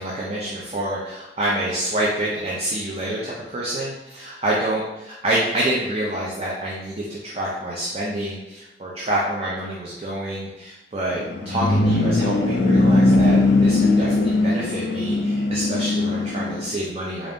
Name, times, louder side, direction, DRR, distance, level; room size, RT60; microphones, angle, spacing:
voice 1, 0.0-4.8 5.2-17.3, right 1 dB, 35° right, -5 dB, 0.5 m, -27 dB
sound 1, 11.1-16.7, left 2 dB, 75° left, 0.4 m, -19 dB
3.8 x 2.4 x 3.5 m, 0.96 s
head